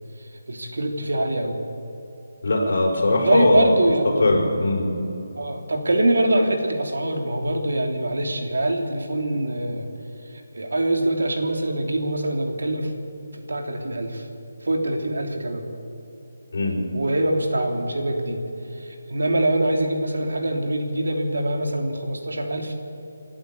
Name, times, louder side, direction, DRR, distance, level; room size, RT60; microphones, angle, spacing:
voice 1, 0.5-1.6 3.2-4.6 5.4-9.9 10.3-12.9 13.3-14.3 14.6-15.6 16.7-18.4 18.7-22.8, right 1 dB, 85° right, 3 dB, 3.2 m, -24 dB
voice 2, 2.4-3.7 4.2-4.9 16.5-16.8, left 2 dB, 50° left, -1 dB, 5.9 m, -20 dB
28.0 x 11.5 x 8.4 m, 3.0 s
hypercardioid pair, 175°, 0 cm